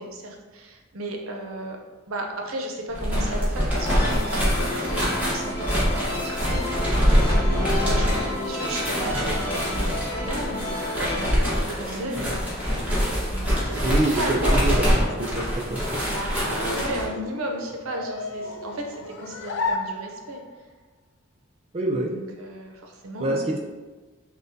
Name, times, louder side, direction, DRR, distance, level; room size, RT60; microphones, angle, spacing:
voice 1, 0.0-1.8 2.1-7.0 7.3-12.8 13.3-15.4 16.1-20.4 21.9-23.5, right 1 dB, 85° right, 2 dB, 0.6 m, -34 dB
sound 1, 2.9-17.1, equal, 10° right, 1.0 m, -24 dB
sound 2, 3.7-11.4, left 1 dB, 40° left, 1.2 m, -31 dB
voice 2, 13.8-15.0 15.3-16.0 21.7-22.1 23.2-23.6, right 2 dB, 30° right, 0 dB, 0.4 m, -25 dB
sound 3, 16.1-20.6, left 3 dB, 60° left, 0.3 m, -34 dB
6.1 x 2.2 x 2.6 m, 1.3 s
head